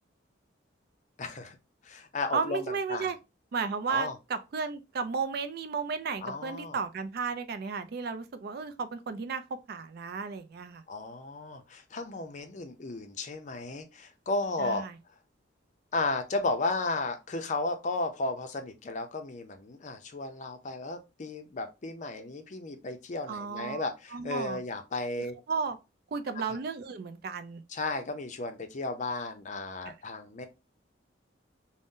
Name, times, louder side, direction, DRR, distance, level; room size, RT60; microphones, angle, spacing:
voice 1, 1.2-1.6 1.8-3.1 3.9-4.1 6.2-6.8 10.9-14.8 15.9-25.4 27.7-30.5, left 3 dB, 40° left, 0.5 m, -34 dB
voice 2, 2.3-3.2 3.5-9.4 9.7-10.8 14.6-14.9 23.3-24.6 25.5-25.8 26.1-27.6 29.8-29.9, right 5 dB, 55° right, 0.4 m, -34 dB
2.6 x 2.0 x 3.6 m
head